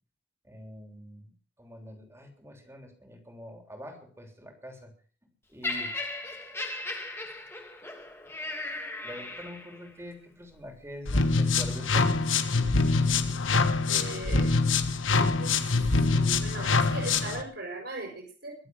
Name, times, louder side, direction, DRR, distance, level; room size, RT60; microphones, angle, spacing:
voice 1, 0.5-1.3 1.6-4.9 5.5-5.9 9.0-12.0, equal, 15° right, 4 dB, 3.4 m, -45 dB
Laughter, 5.6-9.9 10.7-10.9, left 2 dB, 15° left, 2.3 m, -37 dB
sound 1, 11.1-17.4, left 4 dB, 90° left, 1.5 m, -25 dB
voice 2, 13.9-14.5 15.1-15.6 16.1-18.5, right 2 dB, 60° right, -1 dB, 5.4 m, -39 dB
23.0 x 7.7 x 6.3 m, 0.42 s
head